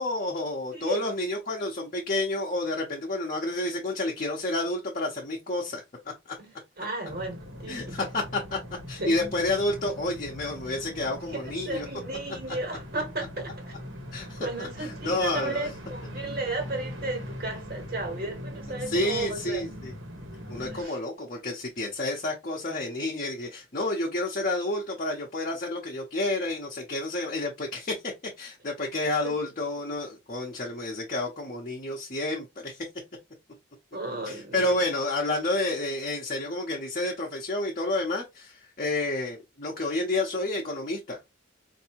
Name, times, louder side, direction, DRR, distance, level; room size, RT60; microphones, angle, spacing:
voice 1, 0.0-5.8 6.3-6.4 7.7-8.6 8.9-11.9 14.1-15.7 18.9-19.9 20.5-28.0 28.4-32.9 34.2-41.2, left 2 dB, 40° left, 0.8 m, -30 dB
voice 2, 6.4-8.1 9.0-9.3 11.0-13.7 14.4-19.6 20.7-21.0 29.2-29.3 33.9-34.8, right 2 dB, 50° right, 1.4 m, -34 dB
sound 1, 7.1-20.9, equal, 80° right, 1.3 m, -41 dB
4.5 x 2.6 x 2.9 m
head